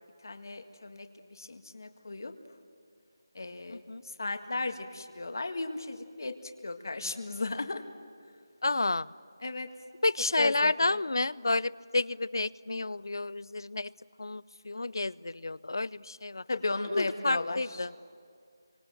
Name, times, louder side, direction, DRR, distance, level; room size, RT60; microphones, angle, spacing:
voice 1, 0.2-2.3 3.3-6.3 6.6-7.8 9.4-9.7 10.4-11.0 16.5-17.8, left 3 dB, 60° left, 7 dB, 1.8 m, -35 dB
voice 2, 3.7-4.0 8.6-9.1 10.0-13.9 14.2-16.4 16.9-17.9, left 2 dB, 80° left, 20 dB, 0.6 m, -30 dB
29.0 x 25.0 x 7.8 m, 2.2 s
figure-of-eight pair, 175°, 2 cm